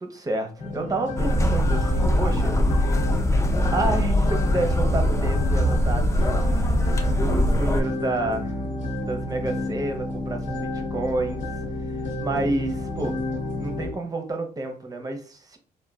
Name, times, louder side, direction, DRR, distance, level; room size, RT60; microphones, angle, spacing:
voice 1, 0.0-2.6 3.7-6.4 6.9-8.6 9.0-11.4 12.2-13.2 13.6-15.6, right 2 dB, 20° right, 4 dB, 0.6 m, -29 dB
sound 1, 0.6-13.9, left 2 dB, 55° left, 0.9 m, -31 dB
sound 2, 1.2-7.8, equal, 20° left, 0.4 m, -22 dB
3.0 x 2.2 x 2.3 m, 0.39 s
cardioid pair, 95°, 16 cm